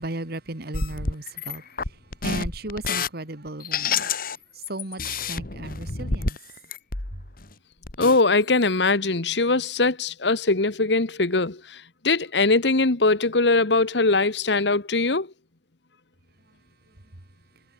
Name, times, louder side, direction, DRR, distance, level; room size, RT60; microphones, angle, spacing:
voice 1, 0.0-1.6 2.2-4.1 4.7-6.4, right 2 dB, 60° right, 2.3 m, -35 dB
sound 1, 0.7-3.1 3.6-4.4 4.6-7.5 7.8-8.2 8.6-8.7, left 5 dB, 55° left, 2.1 m, -29 dB
voice 2, 8.0-11.6 12.0-15.3, left 3 dB, 70° left, 1.5 m, -21 dB
head